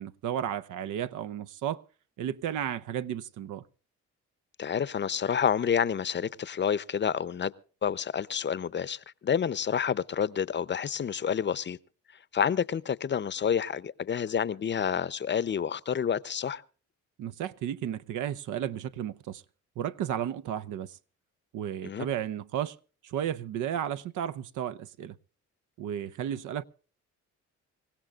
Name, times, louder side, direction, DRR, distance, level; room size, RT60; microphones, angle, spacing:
voice 1, 0.0-1.8 2.2-3.6 17.2-19.4 19.8-21.0 21.5-22.8 23.0-25.2 25.8-26.6, right 10 dB, 80° right, 0.8 m, -33 dB
voice 2, 4.6-7.5 7.8-11.8 12.3-16.6 21.8-22.1, left 7 dB, 35° left, 0.7 m, -29 dB
26.5 x 16.0 x 2.4 m
cardioid pair, 90°, 30 cm